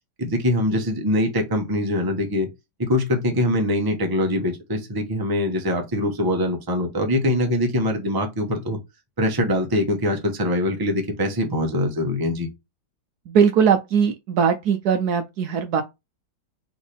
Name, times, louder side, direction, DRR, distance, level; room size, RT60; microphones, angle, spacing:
voice 1, 0.2-2.5 2.8-8.8 9.2-12.5, left 1 dB, 20° right, 0.7 m, -23 dB
voice 2, 13.3-15.8, right 7 dB, 70° right, 1.0 m, -20 dB
4.1 x 3.6 x 3.3 m
omnidirectional pair, 2.0 m